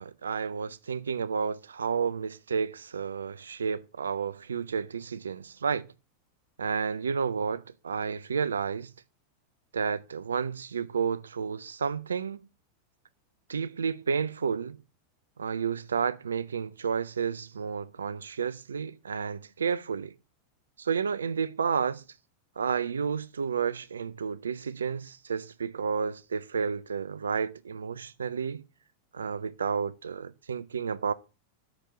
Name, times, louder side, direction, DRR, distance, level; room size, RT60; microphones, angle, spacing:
voice 1, 0.0-5.9 6.6-8.9 9.7-12.4 13.5-14.8 15.4-20.1 20.8-22.0 22.6-28.6 29.1-31.1, right 6 dB, 70° right, 0.4 m, -31 dB
5.9 x 5.1 x 5.5 m
figure-of-eight pair, 90°, 0 cm